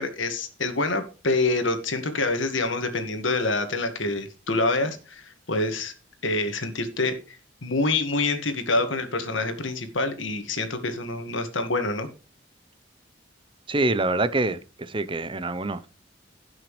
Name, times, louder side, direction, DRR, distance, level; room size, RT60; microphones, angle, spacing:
voice 1, 0.0-5.9 6.2-7.4 7.6-12.1, left 2 dB, 85° left, 1.8 m, -26 dB
voice 2, 13.7-15.9, right 2 dB, 25° right, 0.7 m, -26 dB
17.0 x 6.1 x 3.2 m
head